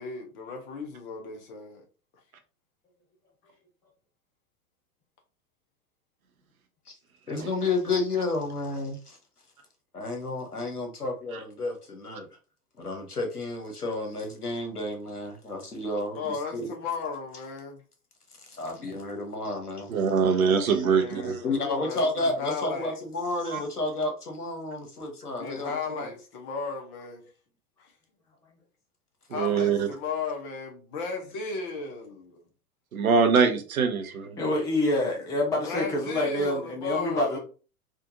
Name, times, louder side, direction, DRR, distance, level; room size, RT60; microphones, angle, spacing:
voice 1, 0.0-1.8 16.1-17.8 20.7-23.0 25.4-27.2 27.8-27.9 29.3-32.4 34.7-35.1 35.6-37.4, left 4 dB, 35° left, 1.0 m, -35 dB
voice 2, 7.3-9.2 9.9-12.3 12.8-16.7 18.6-19.9 21.4-26.1, left 2 dB, 90° left, 1.0 m, -31 dB
voice 3, 19.9-21.4 23.5-23.6 29.3-29.9 32.9-34.4, right 5 dB, 70° right, 0.8 m, -23 dB
voice 4, 34.4-37.4, left 1 dB, 10° left, 0.5 m, -27 dB
3.7 x 2.5 x 2.6 m
figure-of-eight pair, 100°, 45 cm